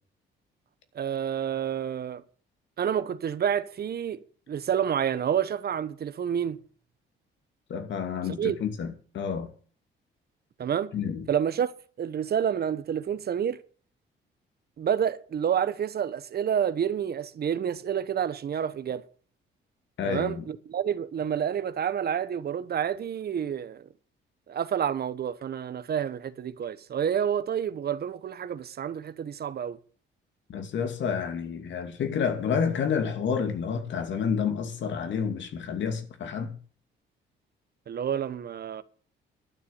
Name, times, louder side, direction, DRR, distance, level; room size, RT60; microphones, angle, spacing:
voice 1, 0.9-2.2 2.8-4.2 4.5-6.6 8.4-8.5 10.6-10.9 11.3-11.7 12.0-13.6 14.8-19.0 20.0-23.8 24.5-29.8 37.9-38.8, right 8 dB, 50° right, 1.0 m, -29 dB
voice 2, 7.7-9.5 10.9-11.3 20.0-20.5 30.5-36.6, left 6 dB, 70° left, 2.5 m, -29 dB
12.0 x 6.9 x 8.7 m
cardioid pair, 90°, 20 cm